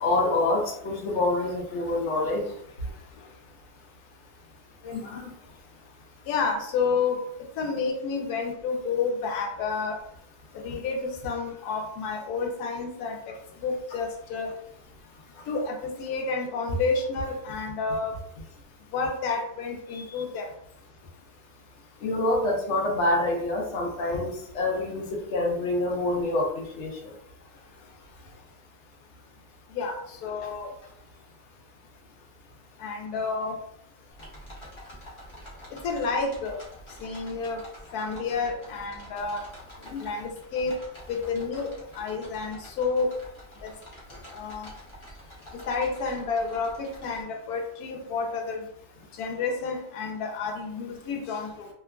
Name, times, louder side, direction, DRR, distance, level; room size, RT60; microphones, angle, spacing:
voice 1, 0.0-2.4 4.8-5.3 19.9-20.0 22.0-27.1 39.9-40.0, left 2 dB, 65° left, 0 dB, 0.8 m, -27 dB
voice 2, 6.3-7.2 7.6-10.0 10.6-13.2 13.6-14.5 15.5-18.2 18.9-20.5 29.7-30.7 32.8-33.6 35.8-36.6 37.0-37.6 37.9-39.4 40.0-40.7 41.1-43.1 43.6-43.7 44.3-44.7 45.7-48.6 49.2-51.7, left 4 dB, 85° left, 3 dB, 1.1 m, -30 dB
sound 1, 34.1-47.2, equal, 40° left, 0.4 m, -47 dB
2.8 x 2.3 x 2.2 m, 0.72 s
omnidirectional pair, 1.6 m